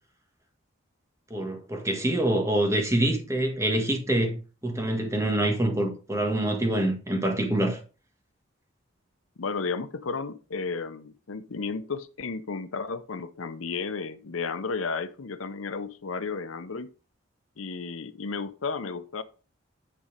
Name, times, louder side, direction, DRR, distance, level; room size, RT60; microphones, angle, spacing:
voice 1, 1.3-4.4 4.6-7.8, right 1 dB, 15° right, 1.6 m, -25 dB
voice 2, 9.4-16.9 17.6-19.2, left 4 dB, 85° left, 0.8 m, -33 dB
10.0 x 4.3 x 5.1 m
head